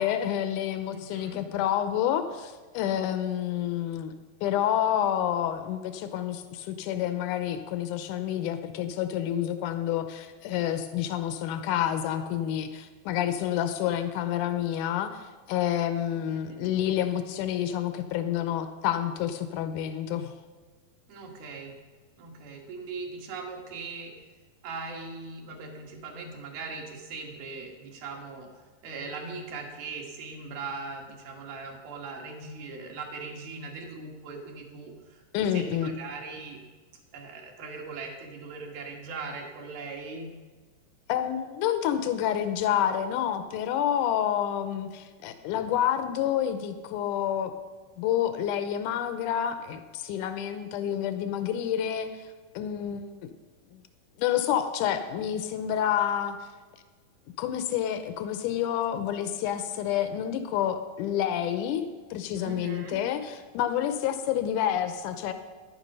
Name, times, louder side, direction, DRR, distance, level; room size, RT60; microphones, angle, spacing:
voice 1, 0.0-4.1 4.4-20.3 35.3-35.9 41.1-47.5 48.0-52.1 52.6-53.3 53.7-53.8 54.2-56.4 57.4-65.3, left 10 dB, 80° left, 9 dB, 1.8 m, -28 dB
voice 2, 0.9-1.4 16.1-16.7 21.1-21.8 22.2-24.1 24.6-28.5 28.8-36.6 37.1-40.3 62.4-63.0, right 4 dB, 70° right, 0 dB, 3.4 m, -40 dB
12.5 x 11.0 x 5.4 m, 1.3 s
omnidirectional pair, 4.5 m